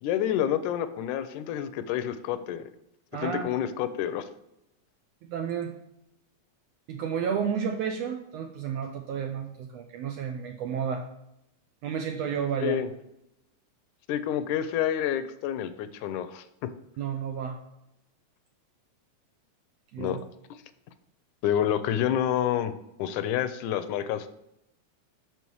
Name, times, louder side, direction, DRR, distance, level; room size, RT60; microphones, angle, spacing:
voice 1, 0.0-2.6 3.2-4.3 12.6-12.9 14.1-16.7 20.0-20.2 21.4-22.7 23.0-24.3, left 10 dB, 80° left, 12 dB, 2.0 m, -28 dB
voice 2, 3.1-3.5 5.2-5.7 6.9-11.1 11.8-12.8 17.0-17.6 19.9-20.2, right 7 dB, 75° right, 4 dB, 1.6 m, -31 dB
7.0 x 5.9 x 4.6 m, 0.83 s
omnidirectional pair, 3.6 m